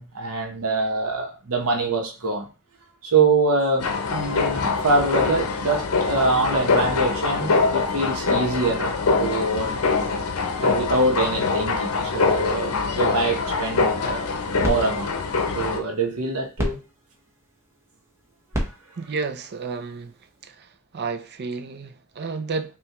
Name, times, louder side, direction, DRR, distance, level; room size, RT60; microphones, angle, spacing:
voice 1, 0.0-2.5 3.0-10.1 10.6-14.3 14.6-15.1 15.5-16.8, right 3 dB, 75° right, 1.0 m, -24 dB
sound 1, 3.8-15.8, left 4 dB, 70° left, 0.6 m, -24 dB
sound 2, 14.1-20.5, equal, 10° right, 0.9 m, -34 dB
voice 2, 19.0-20.2 20.4-22.8, right 4 dB, 50° right, 0.5 m, -31 dB
5.6 x 2.4 x 3.0 m
head